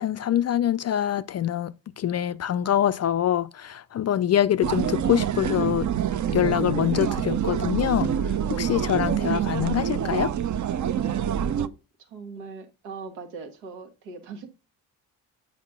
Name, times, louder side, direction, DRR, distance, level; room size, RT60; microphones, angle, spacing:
voice 1, 0.0-5.9 6.3-8.1 8.5-10.3, left 11 dB, 35° left, 0.4 m, -24 dB
sound 1, 4.6-11.7, right 9 dB, 35° right, 0.6 m, -26 dB
voice 2, 10.9-14.5, right 5 dB, 75° right, 1.6 m, -39 dB
8.1 x 5.1 x 3.6 m
hypercardioid pair, 45°, 50 cm